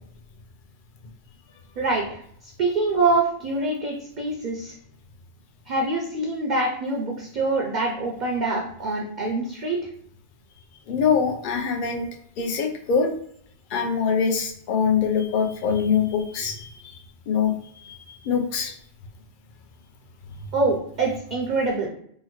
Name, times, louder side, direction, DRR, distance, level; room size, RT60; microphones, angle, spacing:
voice 1, 1.8-2.2 2.6-4.7 5.7-9.8 20.5-21.9, right 3 dB, 55° right, 0 dB, 0.5 m, -25 dB
voice 2, 10.9-12.1 12.4-13.1 13.7-16.7 17.3-17.5 17.8-18.7, left 6 dB, 55° left, 4 dB, 0.6 m, -23 dB
3.7 x 2.1 x 2.9 m, 0.66 s
omnidirectional pair, 1.2 m